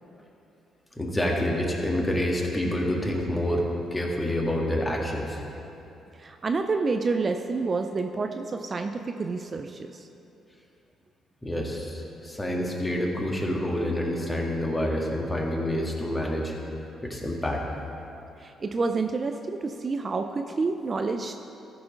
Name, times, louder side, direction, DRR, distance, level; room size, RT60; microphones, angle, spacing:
voice 1, 1.0-5.4 11.4-16.5 17.0-17.6, left 1 dB, 20° left, -1 dB, 1.8 m, -27 dB
voice 2, 6.2-10.0 18.4-21.3, right 4 dB, 40° right, 6 dB, 0.5 m, -28 dB
14.0 x 4.8 x 5.2 m, 2.9 s
supercardioid pair, 60°, 0 cm